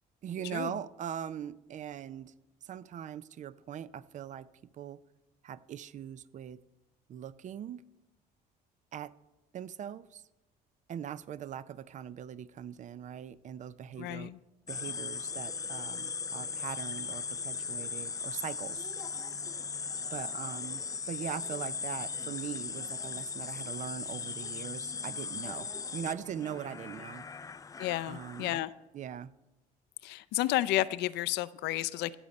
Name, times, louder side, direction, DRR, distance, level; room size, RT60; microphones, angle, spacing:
voice 1, 0.2-2.3 2.6-4.5 4.8-5.0 5.4-6.6 7.1-7.8 8.9-9.1 9.5-10.2 10.9-14.3 14.7-18.9 20.1-27.3 28.0-28.6 28.9-29.3, right 9 dB, 45° right, 0.5 m, -41 dB
voice 2, 14.0-14.4 27.8-28.7 30.0-32.2, left 15 dB, 85° left, 0.5 m, -31 dB
sound 1, 14.7-28.6, left 5 dB, 20° left, 0.4 m, -38 dB
15.5 x 7.1 x 5.3 m
cardioid pair, 110°, 17 cm